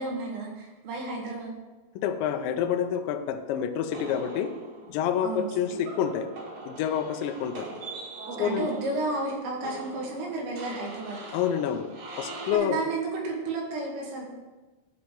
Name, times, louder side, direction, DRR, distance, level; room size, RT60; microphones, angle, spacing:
voice 1, 0.0-1.5 5.2-5.8 8.3-11.2 12.5-14.3, right 3 dB, 90° right, -2 dB, 4.7 m, -32 dB
voice 2, 2.0-4.5 4.9-6.3 6.7-7.7 8.4-8.7 11.3-11.9 12.2-12.8, left 8 dB, 80° left, 6 dB, 2.7 m, -28 dB
sound 1, 3.9-12.5, right 3 dB, 50° right, 2.8 m, -42 dB
12.0 x 4.3 x 7.6 m, 1.2 s
omnidirectional pair, 5.6 m